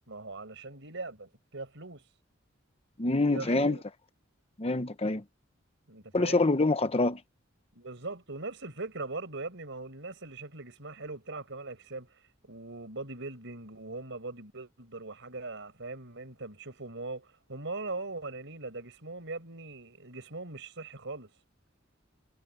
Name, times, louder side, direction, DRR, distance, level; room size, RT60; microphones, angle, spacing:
voice 1, 0.1-2.0 3.3-3.8 5.9-6.5 7.7-12.1 12.4-21.3, right 3 dB, 65° right, 5.6 m, -40 dB
voice 2, 3.0-3.8 4.6-5.2 6.1-7.2, left 2 dB, 30° left, 1.0 m, -26 dB
head